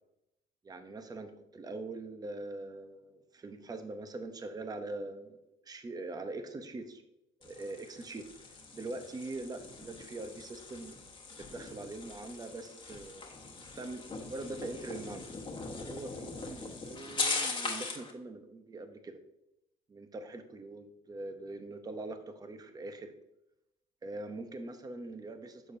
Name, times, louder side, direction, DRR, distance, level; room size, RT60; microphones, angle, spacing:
voice 1, 0.6-5.4 5.6-7.0 7.4-8.3 8.7-10.9 11.4-13.3 13.8-15.3 15.8-19.2 19.9-23.1 24.0-25.8, right 2 dB, 20° right, 8 dB, 0.8 m, -43 dB
sound 1, 7.4-18.1, left 3 dB, 30° left, 1.4 m, -40 dB
9.5 x 6.8 x 2.7 m, 0.86 s
cardioid pair, 110°, 17 cm